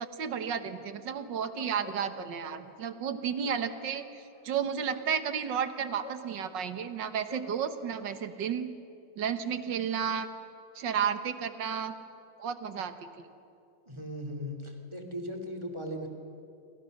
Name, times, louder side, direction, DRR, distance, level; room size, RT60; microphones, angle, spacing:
voice 1, 0.0-4.0 4.4-8.7 9.2-10.3 10.8-11.9 12.4-13.1, right 7 dB, 75° right, 10 dB, 1.9 m, -32 dB
Bark, 1.5-2.6 3.2-5.6 6.0-7.6, left 4 dB, 65° left, 3.0 m, -49 dB
voice 2, 13.9-16.1, equal, 15° right, 3 dB, 2.7 m, -38 dB
27.5 x 25.5 x 6.6 m, 2.6 s
omnidirectional pair, 2.0 m